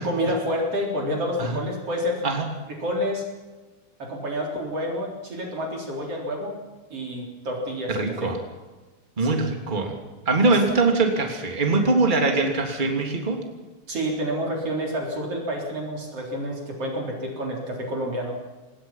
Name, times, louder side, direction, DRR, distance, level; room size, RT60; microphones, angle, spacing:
voice 1, 0.0-2.2 2.7-3.2 4.0-6.5 6.9-8.3 9.2-9.4 10.5-10.6 13.9-18.4, equal, 50° right, 0 dB, 4.8 m, -29 dB
voice 2, 7.9-8.4 9.2-9.9 10.3-13.4, right 3 dB, 15° right, 3 dB, 2.9 m, -22 dB
26.5 x 20.5 x 5.9 m, 1.2 s
omnidirectional pair, 3.5 m